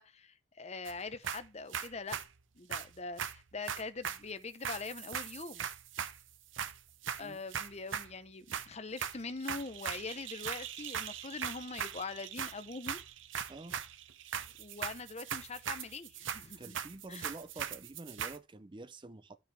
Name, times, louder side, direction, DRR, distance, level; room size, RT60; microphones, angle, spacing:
voice 1, 0.0-2.2 2.6-5.7 7.2-13.0 14.6-16.8 17.1-17.3, left 3 dB, 35° left, 0.8 m, -43 dB
sound 1, 0.8-1.0 1.2-2.3 2.7-4.3 4.6-6.2 6.5-8.1 8.5-8.7 9.0-18.4, right 8 dB, 75° right, 0.8 m, -40 dB
voice 2, 16.6-19.4, right 2 dB, 25° right, 0.5 m, -48 dB
12.5 x 6.2 x 3.3 m
head